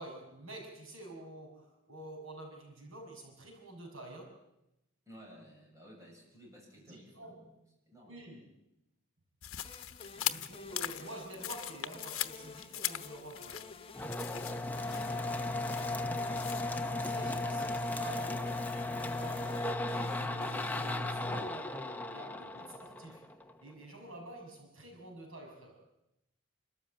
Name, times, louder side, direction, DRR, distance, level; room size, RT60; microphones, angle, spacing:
voice 1, 0.0-4.4 6.8-7.4 8.0-8.5 10.2-13.7 16.9-23.3 23.6-25.8, right 1 dB, 80° right, 1 dB, 6.4 m, -48 dB
voice 2, 5.1-7.6 7.9-8.2 10.1-10.4 14.8-16.4, equal, 15° right, -1 dB, 7.5 m, -55 dB
sound 1, 9.4-16.6, left 12 dB, 85° left, 1.0 m, -41 dB
sound 2, 9.6-21.8, left 4 dB, 25° left, 1.2 m, -52 dB
sound 3, 13.9-23.5, left 2 dB, 10° left, 0.9 m, -36 dB
28.5 x 13.5 x 9.0 m, 0.89 s
head